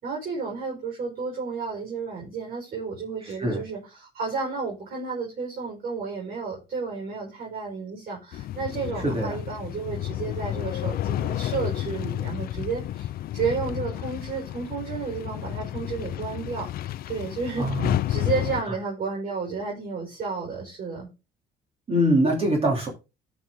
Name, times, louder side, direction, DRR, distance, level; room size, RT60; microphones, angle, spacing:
voice 1, 0.0-13.1 13.3-21.1, right 5 dB, 55° right, 5.2 m, -32 dB
voice 2, 3.2-3.6 9.0-9.4 17.6-18.0 18.7-18.8 21.9-22.9, equal, 35° right, 3.3 m, -23 dB
sound 1, 8.3-18.6, left 13 dB, 60° left, 0.5 m, -31 dB
12.0 x 6.2 x 3.9 m
cardioid pair, 110°, 17 cm